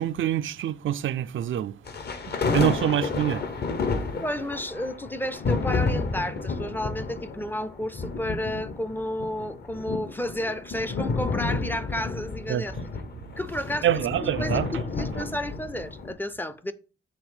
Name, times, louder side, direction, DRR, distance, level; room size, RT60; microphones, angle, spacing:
voice 1, 0.0-1.8 2.3-3.5 12.5-12.7 13.8-14.7, right 11 dB, 80° right, 0.4 m, -26 dB
sound 1, 1.9-16.1, left 4 dB, 55° left, 1.0 m, -31 dB
voice 2, 4.2-12.7 13.4-14.6 14.9-16.7, left 1 dB, 10° left, 0.4 m, -32 dB
7.2 x 3.4 x 4.8 m
wide cardioid pair, 175°, 20 cm